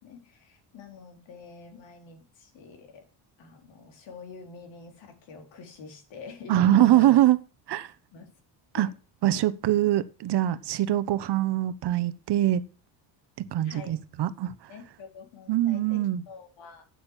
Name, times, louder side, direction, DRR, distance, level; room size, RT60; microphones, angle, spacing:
voice 1, 0.0-3.1 3.4-7.2 8.1-8.3 8.7-8.9 9.8-9.9 13.6-14.0 14.7-16.8, left 5 dB, 70° left, 3.8 m, -46 dB
voice 2, 6.5-7.4 7.7-7.9 8.7-8.9 9.2-12.6 13.5-14.5 15.5-16.2, right 13 dB, 55° right, 1.0 m, -23 dB
8.8 x 8.3 x 7.3 m
cardioid pair, 120°, 47 cm